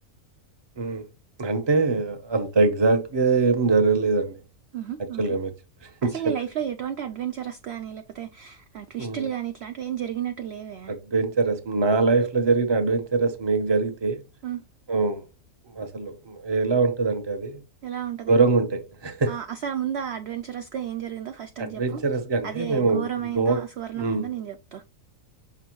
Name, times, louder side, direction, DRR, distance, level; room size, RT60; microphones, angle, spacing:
voice 1, 1.4-4.4 5.2-5.5 5.8-6.3 9.0-9.3 10.9-14.2 14.9-15.2 15.7-17.6 18.3-19.3 21.6-23.1 23.3-23.6 24.0-24.2, right 4 dB, 25° right, 0.7 m, -23 dB
voice 2, 4.7-5.2 6.0-10.9 14.4-14.6 17.8-18.4 19.3-22.0 22.4-24.8, right 10 dB, 65° right, 0.7 m, -32 dB
6.0 x 5.6 x 3.0 m
omnidirectional pair, 1.5 m